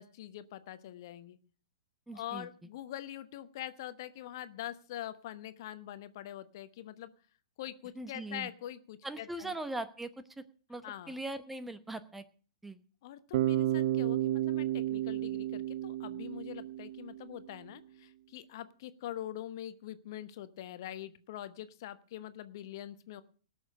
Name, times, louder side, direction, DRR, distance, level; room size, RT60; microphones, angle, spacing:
voice 1, 0.0-1.4 2.1-7.1 7.6-9.5 10.8-11.2 13.0-23.2, left 12 dB, 55° left, 12 dB, 1.0 m, -44 dB
voice 2, 2.1-2.5 8.0-8.5 9.0-10.1 10.4-10.5 10.7-12.2 12.6-12.8, right 2 dB, 5° right, 12 dB, 0.9 m, -40 dB
Bass guitar, 13.3-17.4, right 13 dB, 55° right, 0.6 m, -32 dB
18.0 x 6.5 x 6.5 m, 0.42 s
hypercardioid pair, 115°, 3 cm